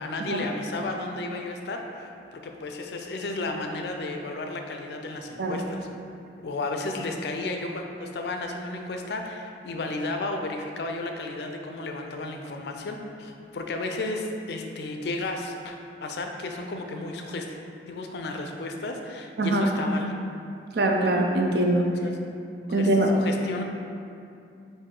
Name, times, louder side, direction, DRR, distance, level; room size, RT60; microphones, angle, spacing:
voice 1, 0.0-5.9 6.4-17.5 17.9-20.1 22.0-22.2 22.8-23.6, left 2 dB, 65° left, 3 dB, 0.4 m, -33 dB
voice 2, 19.4-19.7 20.7-21.9 22.7-23.1, right 1 dB, 60° right, 1 dB, 0.4 m, -23 dB
4.6 x 2.6 x 3.7 m, 2.5 s
head